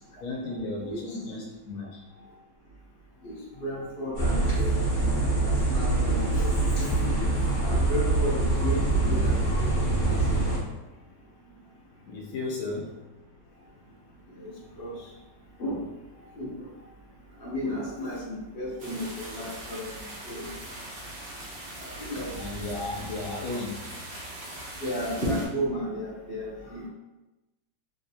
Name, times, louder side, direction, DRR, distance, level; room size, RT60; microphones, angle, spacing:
voice 1, 0.1-2.0 12.1-13.0 22.3-23.8, left 2 dB, 75° left, -3 dB, 1.5 m, -34 dB
voice 2, 3.2-4.8 5.5-6.9 7.6-10.2 14.4-14.5 14.8-14.9 15.6-15.8 16.4-16.5 17.4-19.9 20.3-20.5 22.0-22.3 24.8-26.9, equal, 55° left, -5 dB, 0.6 m, -33 dB
sound 1, 4.1-10.6, right 2 dB, 35° left, 0.9 m, -24 dB
sound 2, 18.8-25.5, right 1 dB, 80° right, 0.5 m, -39 dB
3.3 x 2.8 x 2.7 m, 1.1 s
omnidirectional pair, 2.3 m